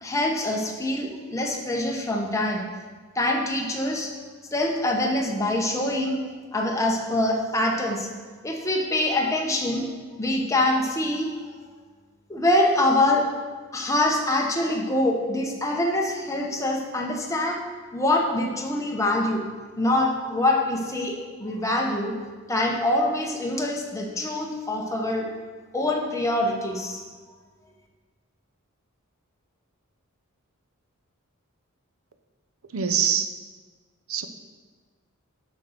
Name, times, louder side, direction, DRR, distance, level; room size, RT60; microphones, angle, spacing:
voice 1, 0.0-2.6 3.1-4.1 4.5-6.2 6.5-8.1 8.4-9.9 10.2-11.3 12.3-13.2 13.7-19.4 19.8-22.1 22.5-25.3 25.7-27.0, left 1 dB, 15° left, 0 dB, 1.1 m, -24 dB
voice 2, 32.7-33.3 34.1-34.3, right 7 dB, 85° right, 8 dB, 0.7 m, -23 dB
7.4 x 6.3 x 5.8 m, 1.4 s
head